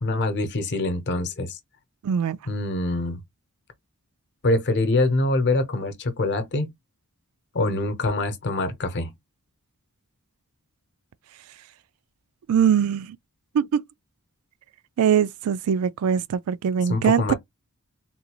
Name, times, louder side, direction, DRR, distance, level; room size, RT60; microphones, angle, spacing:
voice 1, 0.0-1.6 2.5-3.2 4.4-6.7 7.5-9.1 16.9-17.3, left 2 dB, 50° left, 0.8 m, -24 dB
voice 2, 2.0-2.4 12.5-13.2 13.5-13.8 15.0-17.3, right 8 dB, 75° right, 0.3 m, -22 dB
3.8 x 2.3 x 2.9 m
head